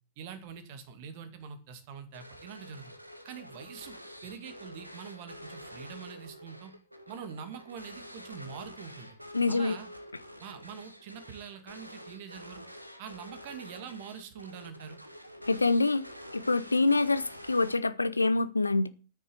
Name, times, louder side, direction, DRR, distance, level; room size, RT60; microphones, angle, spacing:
voice 1, 0.2-2.9 3.2-6.7 7.1-9.2 9.5-9.9 10.4-12.6 13.0-15.0, right 7 dB, 50° right, 2.1 m, -44 dB
sound 1, 2.1-18.1, equal, 90° right, 1.3 m, -48 dB
voice 2, 9.3-9.8 15.5-16.0 16.3-18.9, left 3 dB, 80° left, 0.7 m, -26 dB
9.2 x 6.6 x 8.4 m
figure-of-eight pair, 90°, 0 cm